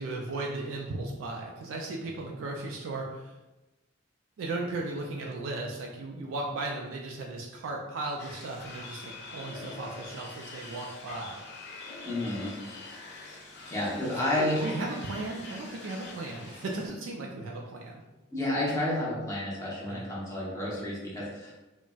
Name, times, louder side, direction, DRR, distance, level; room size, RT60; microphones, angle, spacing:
voice 1, 0.0-3.3 4.4-11.4 14.1-18.0 19.9-20.1, right 2 dB, 80° right, 0 dB, 0.4 m, -36 dB
sound 1, 8.2-16.9, left 3 dB, 60° left, 0.5 m, -44 dB
voice 2, 12.0-12.5 13.7-14.7 18.3-21.5, left 1 dB, 15° left, -6 dB, 0.8 m, -30 dB
3.9 x 2.0 x 2.3 m, 1.1 s
head